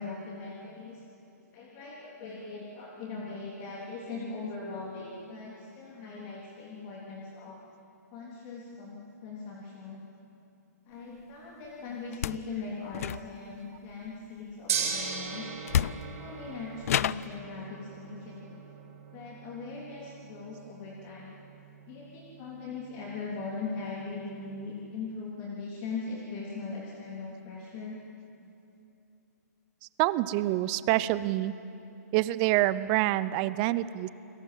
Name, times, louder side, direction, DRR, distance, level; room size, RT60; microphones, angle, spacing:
voice 1, 0.0-7.6 8.1-10.0 10.9-15.5 16.0-18.6 19.1-21.4 21.9-28.0, left 4 dB, 30° left, -3 dB, 3.3 m, -40 dB
sound 1, 12.1-12.5 12.9-13.6 15.1-15.2 15.7-16.3 16.8-17.4, left 10 dB, 60° left, 0.5 m, -29 dB
Gong, 14.7-24.9, right 7 dB, 55° right, 6.9 m, -40 dB
voice 2, 30.0-31.5 32.1-34.1, right 16 dB, 30° right, 16 dB, 0.7 m, -26 dB
29.5 x 21.0 x 7.6 m, 2.7 s
hypercardioid pair, 150°, 9 cm